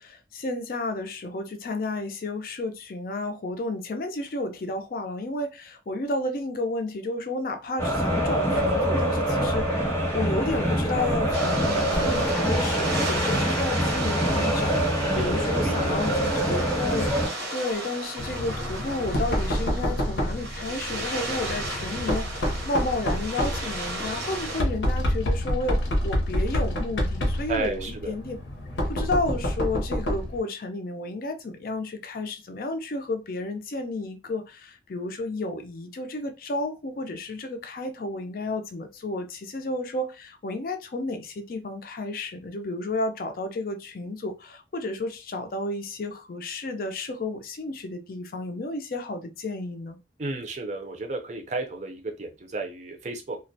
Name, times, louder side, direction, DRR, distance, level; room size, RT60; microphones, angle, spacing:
voice 1, 0.0-28.4 28.9-50.0, left 2 dB, 50° left, 0.4 m, -32 dB
sound 1, 7.8-17.3, equal, 15° left, 0.7 m, -25 dB
sound 2, 11.3-24.6, right 1 dB, 80° right, 0.8 m, -34 dB
voice 2, 15.2-16.0 27.5-28.1 50.2-53.4, right 3 dB, 40° right, 0.5 m, -33 dB
Knock, 18.2-30.4, equal, 90° left, 0.7 m, -28 dB
2.3 x 2.1 x 2.6 m
head